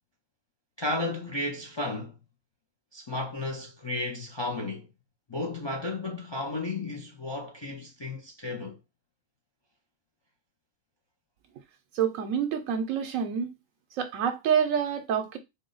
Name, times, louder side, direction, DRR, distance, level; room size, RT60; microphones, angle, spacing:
voice 1, 0.8-2.2 2.9-4.9 5.3-8.8, left 2 dB, 45° left, 0.3 m, -33 dB
voice 2, 11.9-13.5 14.0-15.4, right 7 dB, 80° right, 1.0 m, -27 dB
3.8 x 2.1 x 3.8 m
omnidirectional pair, 1.4 m